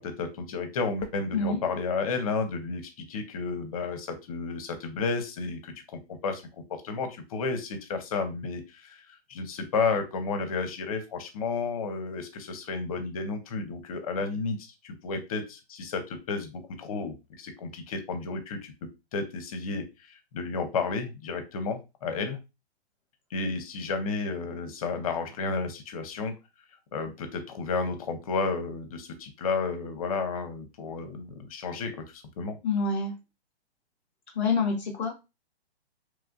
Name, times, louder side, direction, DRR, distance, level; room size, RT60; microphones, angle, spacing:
voice 1, 0.0-5.7 6.2-6.4 6.8-9.0 9.3-19.9 20.3-22.4 23.3-26.3 26.9-32.6, left 4 dB, 35° left, 7 dB, 0.7 m, -32 dB
voice 2, 32.6-33.1 34.3-35.1, left 4 dB, 5° right, -15 dB, 0.3 m, -26 dB
3.0 x 2.5 x 2.5 m, 0.26 s
hypercardioid pair, 160°, 32 cm